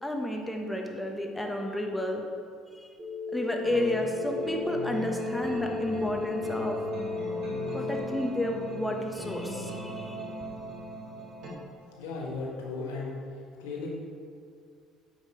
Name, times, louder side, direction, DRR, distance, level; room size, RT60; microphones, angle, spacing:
voice 1, 0.0-2.2 2.8-2.9 3.3-6.8 7.7-10.2, left 1 dB, 5° left, 2 dB, 1.3 m, -31 dB
Telephone, 3.0-8.0, left 4 dB, 35° right, 1.9 m, -35 dB
sound 1, 3.6-11.5, right 1 dB, 55° right, 2.0 m, -38 dB
voice 2, 11.8-13.9, left 3 dB, 75° left, -3 dB, 1.6 m, -37 dB
8.9 x 5.8 x 4.6 m, 2.2 s
hypercardioid pair, 55°, 0 cm